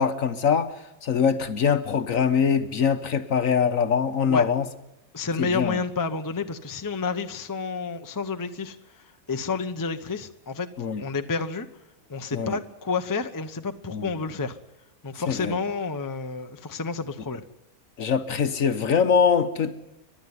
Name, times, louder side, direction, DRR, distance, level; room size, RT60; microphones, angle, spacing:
voice 1, 0.0-4.7 5.4-5.8 10.8-11.0 12.3-12.6 13.9-14.1 15.3-15.5 18.0-19.8, left 6 dB, 55° left, 1.4 m, -23 dB
voice 2, 5.1-10.7 11.0-11.7 12.1-14.6 15.0-17.4, left 4 dB, 15° left, 0.7 m, -30 dB
29.0 x 12.0 x 9.6 m
omnidirectional pair, 1.8 m